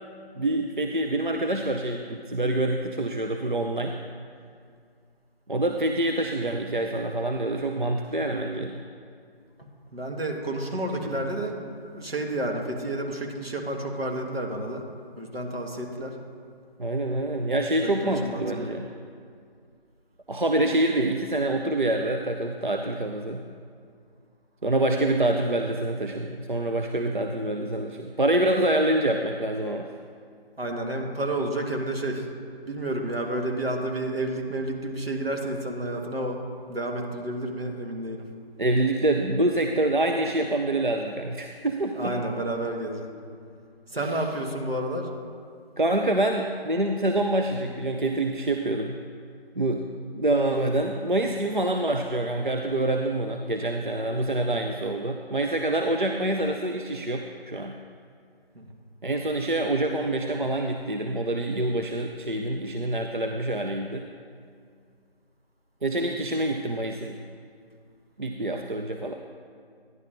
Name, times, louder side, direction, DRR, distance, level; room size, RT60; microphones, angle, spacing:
voice 1, 0.4-4.0 5.5-8.8 11.0-11.2 16.8-18.9 20.3-23.4 24.6-29.9 38.6-42.2 44.0-44.1 45.8-49.0 49.6-49.9 50.1-57.8 59.0-64.0 65.8-67.2 68.2-69.1, right 1 dB, 55° right, 3 dB, 0.5 m, -26 dB
voice 2, 9.9-11.6 11.9-14.8 15.2-16.1 17.8-18.4 30.6-32.3 32.6-36.4 36.7-38.3 41.9-43.1 43.9-45.1 58.5-58.8, right 1 dB, 75° right, 1 dB, 1.5 m, -30 dB
11.0 x 10.5 x 2.6 m, 2.3 s
figure-of-eight pair, 170°, 30 cm